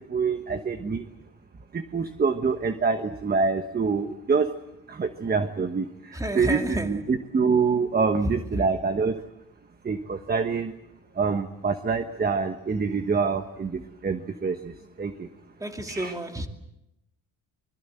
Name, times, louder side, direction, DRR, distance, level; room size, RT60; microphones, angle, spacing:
voice 1, 0.1-1.1 1.7-4.5 4.9-9.2 9.8-10.7 11.1-15.3 15.9-16.1, right 5 dB, 25° right, 1.2 m, -26 dB
voice 2, 6.1-6.9 8.2-8.7 15.6-16.5, right 1 dB, 10° right, 2.5 m, -30 dB
25.5 x 22.0 x 7.8 m
cardioid pair, 130°, 37 cm